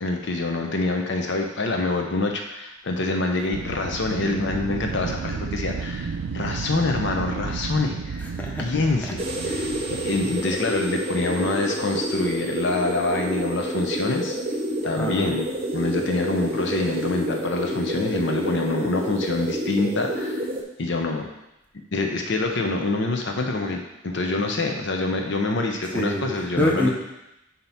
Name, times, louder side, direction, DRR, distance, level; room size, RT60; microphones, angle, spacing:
voice 1, 0.0-8.2 8.6-14.4 14.8-15.5 15.7-20.5 20.8-21.2 21.9-26.9, left 3 dB, 60° left, 3 dB, 0.7 m, -26 dB
Wind, 3.5-10.5, right 5 dB, 80° right, 0.4 m, -32 dB
voice 2, 8.2-8.7 15.0-15.3 25.9-26.9, left 1 dB, 10° left, -2 dB, 0.9 m, -25 dB
sound 1, 9.2-20.6, right 1 dB, 30° right, 0.8 m, -28 dB
7.4 x 2.9 x 5.7 m, 0.90 s
head